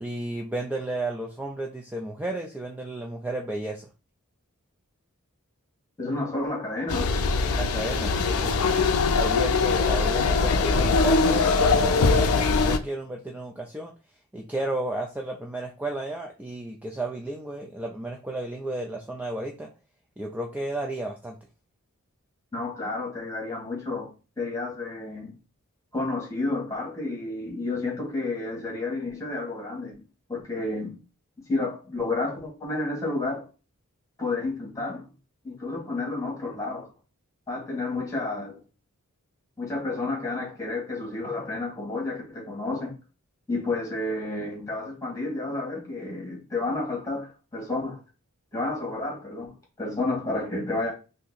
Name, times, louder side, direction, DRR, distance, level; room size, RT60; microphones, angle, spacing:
voice 1, 0.0-3.9 7.5-8.5 9.2-13.9 14.3-19.7 20.2-21.4, right 1 dB, 5° right, 0.3 m, -33 dB
voice 2, 6.0-7.3 22.5-25.3 25.9-30.0 30.3-30.9 31.5-33.5 34.2-35.0 35.4-36.9 37.5-38.6 39.6-42.9 43.5-48.0 48.5-50.9, left 2 dB, 15° left, 1.4 m, -31 dB
sound 1, 6.9-12.8, left 4 dB, 75° left, 0.5 m, -22 dB
2.8 x 2.6 x 4.0 m
head